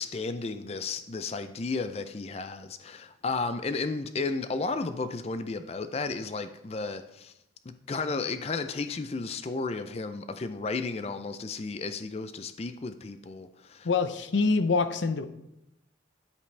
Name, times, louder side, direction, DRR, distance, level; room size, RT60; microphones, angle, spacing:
voice 1, 0.0-7.3 7.7-13.9, left 3 dB, 35° left, 0.4 m, -33 dB
voice 2, 13.8-15.2, left 4 dB, 80° left, 0.6 m, -25 dB
9.4 x 8.3 x 3.3 m
head